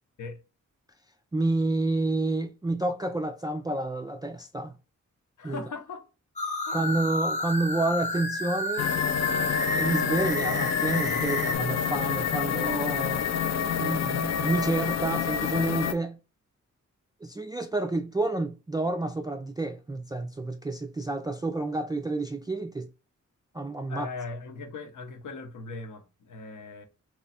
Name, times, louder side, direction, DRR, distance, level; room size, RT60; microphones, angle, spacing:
voice 1, 1.3-4.7 5.4-5.6 6.7-8.9 9.7-13.2 13.8-16.2 17.2-22.9 23.5-24.1, right 2 dB, 15° right, 0.3 m, -29 dB
voice 2, 5.4-6.1 6.7-7.0 23.9-26.8, left 3 dB, 75° left, 0.8 m, -39 dB
sound 1, 6.4-11.5, left 2 dB, 25° left, 0.7 m, -31 dB
sound 2, 8.8-15.9, left 8 dB, 60° left, 0.4 m, -28 dB
3.0 x 2.3 x 4.1 m
cardioid pair, 75°, 31 cm